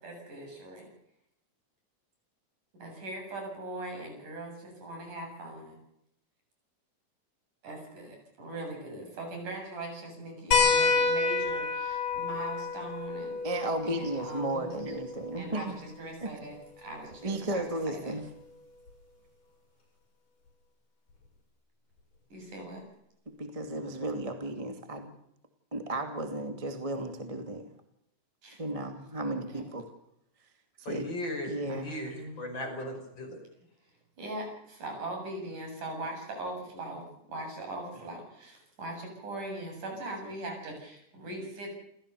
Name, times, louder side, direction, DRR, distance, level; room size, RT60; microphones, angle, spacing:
voice 1, 0.0-0.9 2.8-5.8 7.6-13.4 13.8-15.0 15.3-18.2 22.3-22.8 28.4-28.6 29.5-29.6 31.7-32.5 34.2-41.7, right 2 dB, 85° right, 2 dB, 9.3 m, -40 dB
sound 1, 10.5-15.6 17.1-17.2 18.9-19.0, left 4 dB, 55° left, 8.1 m, -29 dB
voice 2, 13.4-15.8 16.2-16.3 17.2-18.2 23.3-25.1 25.7-27.7 28.6-29.9 30.8-31.1 31.4-32.0, right 1 dB, 10° right, 6 dB, 2.1 m, -34 dB
voice 3, 30.8-33.4, left 1 dB, 35° left, 3 dB, 6.5 m, -37 dB
29.0 x 16.0 x 7.0 m, 0.76 s
omnidirectional pair, 3.5 m